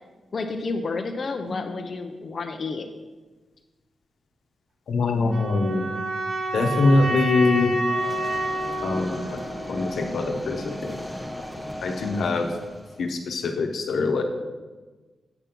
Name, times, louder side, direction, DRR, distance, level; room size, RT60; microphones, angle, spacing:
voice 1, 0.3-2.9, left 3 dB, 45° left, 4 dB, 0.5 m, -30 dB
voice 2, 4.9-6.0 6.5-7.8 8.8-9.4 9.7-11.0 11.8-12.5 13.0-14.2, left 3 dB, 85° left, 3 dB, 1.0 m, -23 dB
sound 1, 5.3-10.3, right 1 dB, 55° right, 1.5 m, -29 dB
sound 2, 7.9-13.1, equal, 5° right, 0.8 m, -36 dB
8.1 x 5.3 x 5.9 m, 1.3 s
wide cardioid pair, 120°, 0 cm